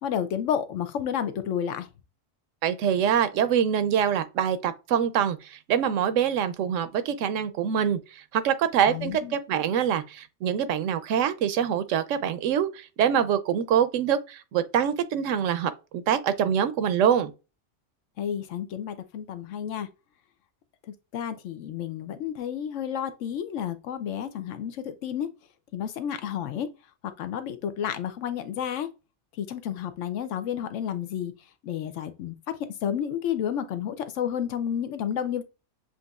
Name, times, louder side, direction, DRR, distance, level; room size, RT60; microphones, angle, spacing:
voice 1, 0.0-1.9 8.9-9.3 18.2-19.9 21.1-25.3 25.7-26.7 27.0-28.9 29.4-31.3 31.6-32.6 32.8-35.4, left 9 dB, 80° left, 1.0 m, -31 dB
voice 2, 2.6-8.0 8.3-17.3, right 8 dB, 85° right, 0.9 m, -25 dB
7.3 x 2.6 x 2.3 m
omnidirectional pair, 1.3 m